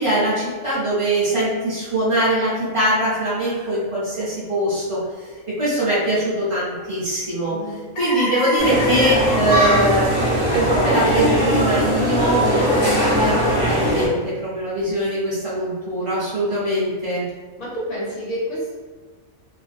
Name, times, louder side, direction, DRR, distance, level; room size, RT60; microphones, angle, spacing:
voice 1, 0.0-5.3 5.6-7.6 8.0-10.1 10.5-17.2, right 1 dB, 45° right, -9 dB, 0.4 m, -22 dB
sound 1, 3.4-3.8 4.2-4.3 4.8-4.9 6.2-7.0 7.4-7.5 7.9-10.3 11.4-11.5, left 2 dB, 65° left, 0.6 m, -29 dB
voice 2, 7.5-7.8 17.6-18.8, equal, 90° left, -6 dB, 1.3 m, -29 dB
sound 2, 8.6-14.1, equal, 25° left, 0.9 m, -19 dB
2.4 x 2.4 x 2.4 m, 1.4 s
omnidirectional pair, 1.4 m